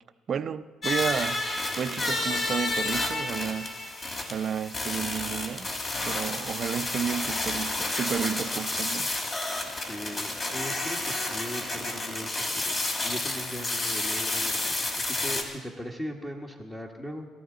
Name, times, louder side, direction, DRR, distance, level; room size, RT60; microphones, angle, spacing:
voice 1, 0.3-1.4 1.8-3.8 4.2-9.1, right 7 dB, 50° right, 0.6 m, -32 dB
sound 1, 0.8-15.4, left 2 dB, 40° left, 3.2 m, -30 dB
voice 2, 9.7-17.3, equal, 15° left, 1.6 m, -39 dB
22.0 x 14.0 x 4.0 m
supercardioid pair, 85°, 0 cm